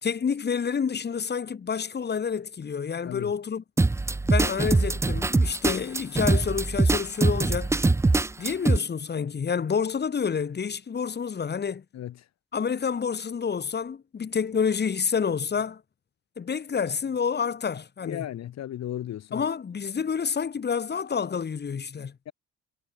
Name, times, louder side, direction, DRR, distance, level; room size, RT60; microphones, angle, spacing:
voice 1, 0.0-3.6 4.3-7.7 8.4-11.8 12.5-15.8 16.4-18.3 19.3-22.2, left 6 dB, 35° left, 1.3 m, -28 dB
sound 1, 3.8-8.8, right 3 dB, 10° right, 0.4 m, -23 dB
voice 2, 18.0-19.4 22.3-22.4, left 11 dB, 60° left, 1.0 m, -35 dB
cardioid pair, 90°, 30 cm